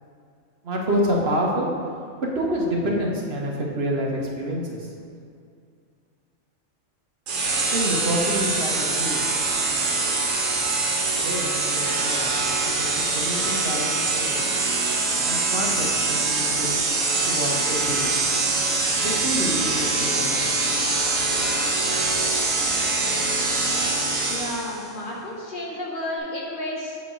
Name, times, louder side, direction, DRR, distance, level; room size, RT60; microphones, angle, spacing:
voice 1, 0.6-1.7 2.2-4.9 7.7-9.2 11.1-12.3 12.6-14.5 15.2-16.8 17.3-18.2 18.9-20.5, equal, 55° right, -2 dB, 1.0 m, -28 dB
sound 1, 7.3-24.8, right 3 dB, 85° right, 1.3 m, -24 dB
voice 2, 24.3-27.0, left 1 dB, 45° left, -3 dB, 0.9 m, -31 dB
7.4 x 3.1 x 6.0 m, 2.3 s
omnidirectional pair, 1.3 m